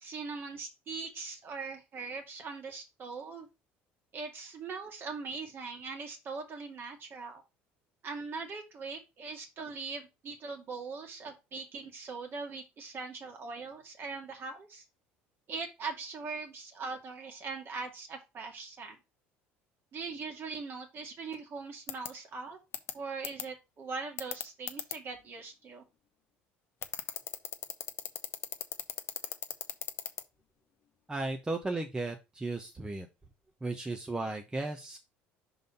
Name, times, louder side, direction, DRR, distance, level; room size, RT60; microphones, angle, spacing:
voice 1, 0.0-3.5 4.1-7.4 8.0-14.8 15.5-19.0 19.9-22.6 22.9-25.8, right 4 dB, 45° right, 2 dB, 2.3 m, -41 dB
sound 1, 21.9-22.1 22.7-22.9 23.2-23.4 24.2-24.9 26.8-30.2, left 9 dB, 50° left, 0.9 m, -35 dB
voice 2, 31.1-33.1 33.6-35.0, right 2 dB, 15° right, 4 dB, 1.0 m, -35 dB
5.3 x 4.0 x 5.3 m, 0.25 s
supercardioid pair, 80°, 5 cm